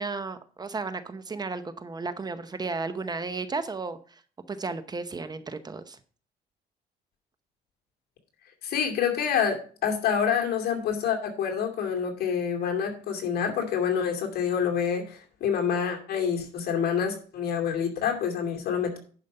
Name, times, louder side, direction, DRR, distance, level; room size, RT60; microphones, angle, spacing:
voice 1, 0.0-4.2 4.5-6.0, right 4 dB, 25° right, 11 dB, 0.8 m, -34 dB
voice 2, 8.6-19.0, left 7 dB, 65° left, 2 dB, 2.4 m, -27 dB
10.5 x 5.2 x 5.5 m, 0.43 s
cardioid pair, 110°, 17 cm